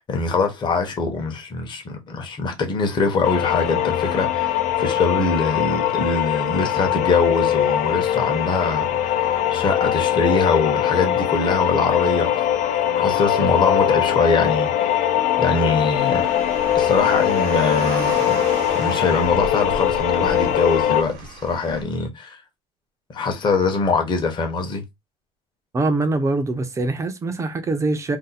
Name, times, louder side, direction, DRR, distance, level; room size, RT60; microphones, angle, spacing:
voice 1, 0.0-8.9 9.5-12.4 13.0-15.0 15.4-16.2 16.7-18.4 18.7-22.4 23.1-24.8, left 4 dB, 30° left, 0.9 m, -23 dB
sound 1, 3.2-21.0, left 11 dB, 65° left, 0.6 m, -21 dB
Car, 16.0-21.8, right 4 dB, 85° right, 0.9 m, -35 dB
voice 2, 25.7-28.2, right 2 dB, 20° right, 0.5 m, -23 dB
2.6 x 2.2 x 4.0 m
cardioid pair, 150°, 15 cm